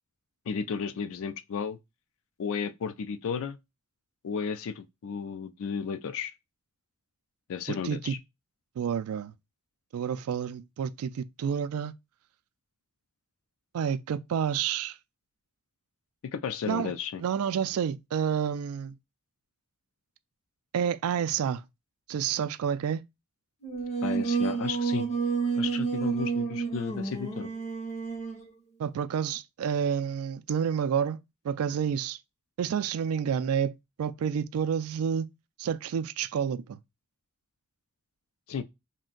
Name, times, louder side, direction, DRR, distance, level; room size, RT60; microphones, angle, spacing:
voice 1, 0.5-1.8 2.4-3.6 4.2-6.3 7.5-8.2 16.2-17.2 24.0-25.1 25.6-27.5 38.5-38.6, left 6 dB, 65° left, 0.4 m, -33 dB
voice 2, 7.7-8.1 8.8-9.3 9.9-11.9 13.7-15.0 16.7-16.9 17.2-19.0 20.7-21.6 22.1-23.0 28.8-31.2 31.4-32.2 32.6-35.3 35.6-36.8, right 7 dB, 70° right, 0.3 m, -29 dB
Singing, 23.6-28.5, right 5 dB, 30° left, 0.7 m, -30 dB
2.5 x 2.1 x 3.7 m
head